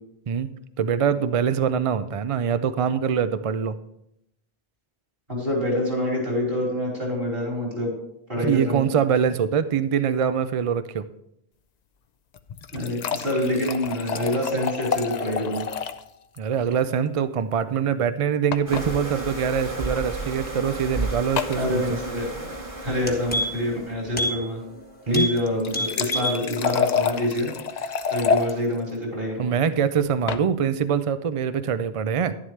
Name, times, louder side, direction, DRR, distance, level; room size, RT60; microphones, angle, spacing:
voice 1, 0.8-3.7 8.4-11.0 16.4-22.0 25.1-25.3 29.4-32.4, right 7 dB, 50° right, 12 dB, 0.4 m, -24 dB
voice 2, 5.3-7.9 8.3-8.8 12.7-15.6 21.5-22.2 22.8-24.6 25.1-29.5, left 1 dB, 65° right, -3 dB, 5.0 m, -26 dB
sound 1, 12.3-16.1 16.4-16.5 16.7-16.8 18.5-18.9 19.8-20.0 21.4-21.6 25.4-28.5 30.0-30.5, left 6 dB, 50° left, 0.6 m, -28 dB
sound 2, 18.7-23.9, right 2 dB, 30° right, 1.7 m, -33 dB
sound 3, 22.5-22.6 22.9-23.8 24.1-24.4 24.7-24.8 25.1-25.4 25.7-26.4 26.8-26.9, equal, 10° left, 1.2 m, -27 dB
11.0 x 11.0 x 3.2 m, 0.78 s
omnidirectional pair, 1.0 m